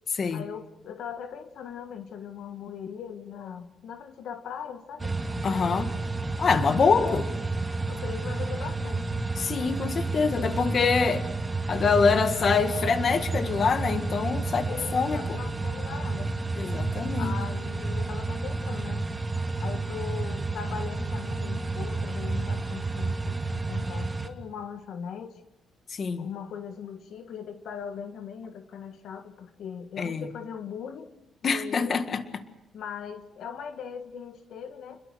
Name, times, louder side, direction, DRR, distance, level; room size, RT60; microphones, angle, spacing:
voice 1, 0.3-5.1 6.5-7.2 7.9-9.2 14.7-16.3 17.1-19.1 19.5-25.4 26.2-31.1 31.4-32.0 32.7-35.0, left 7 dB, 75° left, 7 dB, 1.6 m, -39 dB
sound 1, 5.0-24.3, right 3 dB, 15° right, 2.8 m, -31 dB
voice 2, 5.4-5.9 6.4-7.2 9.4-11.3 11.7-15.4 16.6-17.4 25.9-26.3 30.0-30.3 31.4-32.5, left 5 dB, 45° left, 8 dB, 1.8 m, -25 dB
29.5 x 22.0 x 6.3 m, 0.89 s
cardioid pair, 125°, 0 cm